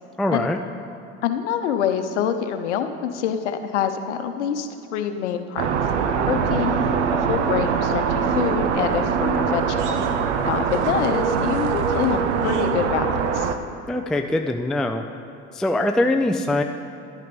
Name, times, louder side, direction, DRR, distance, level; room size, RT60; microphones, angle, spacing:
voice 1, 0.2-0.6 13.9-15.0 15.5-16.6, left 1 dB, ahead, 5 dB, 0.4 m, -22 dB
voice 2, 1.2-5.7 6.3-6.8 7.1-10.0 10.4-13.5, left 8 dB, 90° left, 8 dB, 0.8 m, -26 dB
sound 1, 5.6-13.6, right 6 dB, 90° right, 0.8 m, -23 dB
11.0 x 9.3 x 5.2 m, 2.7 s
supercardioid pair, 90°, 34 cm